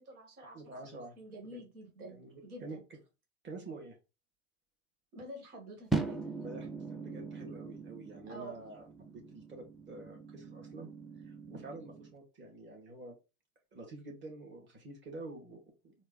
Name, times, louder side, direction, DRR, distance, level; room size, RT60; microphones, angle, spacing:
voice 1, 0.0-0.8 1.2-2.8 5.1-6.3 8.3-8.6, right 1 dB, 80° right, 0 dB, 1.9 m, -48 dB
voice 2, 0.5-1.2 1.5-1.6 2.1-2.8 3.4-4.0 6.1-10.9 11.2-13.1 13.7-16.0, right 2 dB, 25° right, 0 dB, 2.1 m, -48 dB
sound 1, 5.9-12.1, right 3 dB, ahead, 0.5 m, -40 dB
4.3 x 2.8 x 3.9 m, 0.29 s
hypercardioid pair, 85°, 44 cm